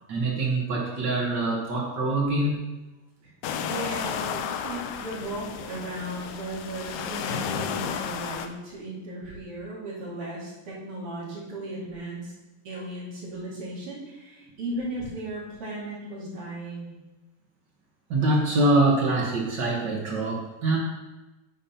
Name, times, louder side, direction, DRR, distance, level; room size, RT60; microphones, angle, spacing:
voice 1, 0.1-2.6 18.1-20.8, right 2 dB, 65° right, -2 dB, 1.0 m, -24 dB
sound 1, 3.4-8.5, left 8 dB, 85° left, 2.3 m, -33 dB
voice 2, 3.5-12.3 12.6-17.0, right 1 dB, 45° right, -5 dB, 3.0 m, -36 dB
8.9 x 4.2 x 5.6 m, 1.1 s
omnidirectional pair, 3.8 m